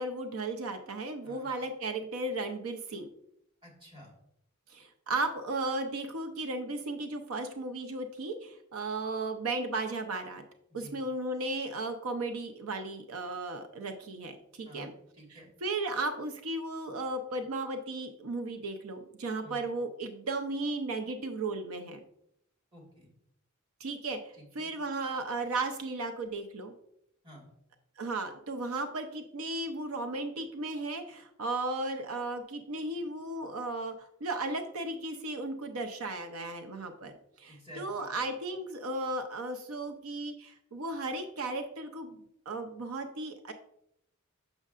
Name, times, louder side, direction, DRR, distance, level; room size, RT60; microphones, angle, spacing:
voice 1, 0.0-3.1 4.7-10.4 10.7-14.9 15.6-22.0 23.8-24.2 24.5-26.7 28.0-33.9 34.2-37.1 37.4-42.2 42.5-43.5, right 2 dB, 90° right, 6 dB, 0.6 m, -35 dB
voice 2, 3.6-4.1 10.7-11.0 14.6-15.5 19.4-19.6 22.7-23.1 24.3-24.7 27.2-27.5 37.5-38.1, equal, 25° right, -2 dB, 1.8 m, -51 dB
6.4 x 6.3 x 2.4 m, 0.76 s
head